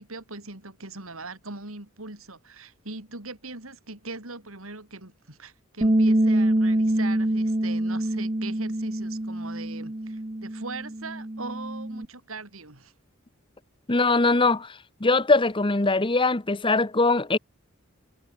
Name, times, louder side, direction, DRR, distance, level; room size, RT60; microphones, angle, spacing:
voice 1, 0.0-12.9, right 3 dB, 85° right, 4.8 m, -40 dB
Bass guitar, 5.8-12.1, right 1 dB, 25° right, 1.2 m, -25 dB
voice 2, 13.9-14.7 15.0-17.4, left 3 dB, 25° left, 1.1 m, -21 dB
head